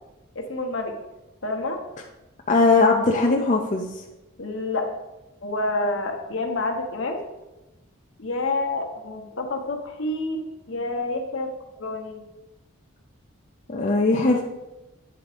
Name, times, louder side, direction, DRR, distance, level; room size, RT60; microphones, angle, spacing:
voice 1, 0.3-0.9 1.4-1.8 4.4-4.9 5.4-7.2 8.2-10.4 10.7-12.2, left 2 dB, 65° left, 3 dB, 1.1 m, -28 dB
voice 2, 2.5-4.0 13.7-14.4, left 3 dB, 35° left, 0 dB, 0.5 m, -19 dB
8.9 x 3.6 x 5.0 m, 1.0 s
head